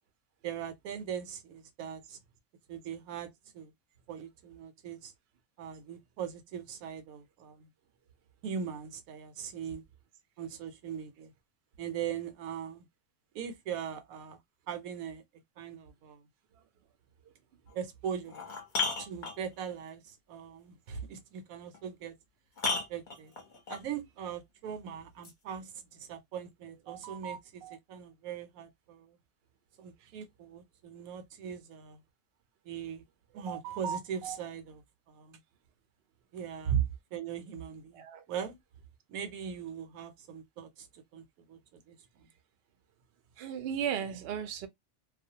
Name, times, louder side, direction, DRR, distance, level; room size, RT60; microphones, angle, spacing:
voice 1, 0.4-2.2 2.7-3.7 4.1-5.1 5.6-7.7 8.4-9.8 10.4-11.3 11.8-12.8 13.3-14.4 14.7-15.2 15.6-16.2 17.7-18.4 19.0-22.1 22.7-23.3 23.7-29.2 29.8-32.0 32.6-33.0 33.3-35.4 36.3-36.8 37.1-38.6 39.1-42.3, right 8 dB, 85° right, 1.0 m, -40 dB
sound 1, 17.7-17.8 18.3-19.7 21.7-21.8 22.6-23.9 25.2-25.3, left 4 dB, 45° left, 0.8 m, -34 dB
voice 2, 43.4-44.7, right 9 dB, 65° right, 0.6 m, -32 dB
2.4 x 2.2 x 2.7 m
omnidirectional pair, 1.5 m